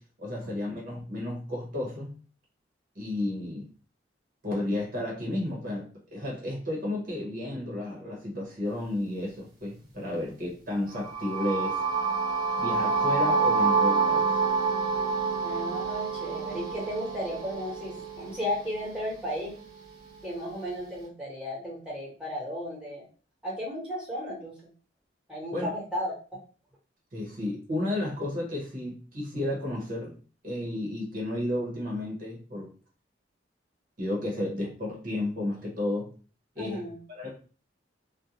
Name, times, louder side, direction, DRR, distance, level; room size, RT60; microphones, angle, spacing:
voice 1, 0.0-2.1 2.9-3.7 4.4-11.8 12.6-14.3 25.5-25.7 27.1-30.1 30.4-32.7 34.0-36.1 36.5-36.8 37.1-37.3, left 1 dB, 50° right, -2 dB, 0.9 m, -32 dB
sound 1, 10.9-18.9, right 4 dB, 25° right, 0.8 m, -27 dB
voice 2, 15.4-19.5 20.2-23.0 23.4-24.5 25.3-26.1 36.6-37.0, equal, 5° right, -6 dB, 1.0 m, -34 dB
2.4 x 2.2 x 2.8 m, 0.37 s
head